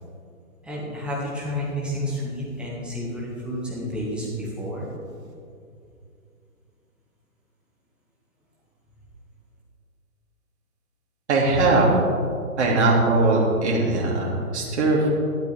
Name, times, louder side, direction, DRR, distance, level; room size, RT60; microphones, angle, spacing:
voice 1, 0.6-4.9, equal, ahead, -6 dB, 1.8 m, -30 dB
voice 2, 11.3-11.9 12.6-15.1, right 2 dB, 50° right, -2 dB, 2.8 m, -20 dB
12.0 x 11.5 x 3.5 m, 2.4 s
figure-of-eight pair, 135°, 44 cm